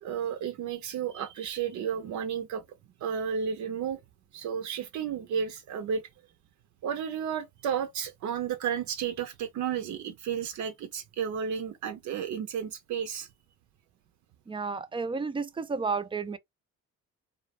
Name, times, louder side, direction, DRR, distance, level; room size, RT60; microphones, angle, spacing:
voice 1, 0.0-2.6 3.0-4.0 4.3-6.0 6.8-13.3, right 7 dB, 70° right, 0.5 m, -32 dB
voice 2, 14.5-16.4, right 4 dB, 20° right, 0.3 m, -32 dB
2.4 x 2.0 x 2.9 m
cardioid pair, 90°, 30 cm